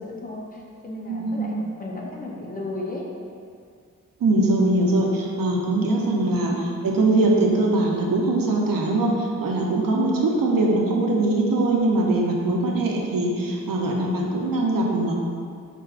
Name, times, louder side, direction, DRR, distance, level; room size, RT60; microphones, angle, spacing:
voice 1, 0.0-3.1 6.5-6.7 10.5-10.8, left 2 dB, 25° left, -2 dB, 0.5 m, -35 dB
voice 2, 1.1-1.6 4.2-6.5 6.8-15.2, right 2 dB, 90° right, -1 dB, 0.7 m, -22 dB
4.7 x 4.1 x 2.4 m, 2.2 s
wide cardioid pair, 170°, 33 cm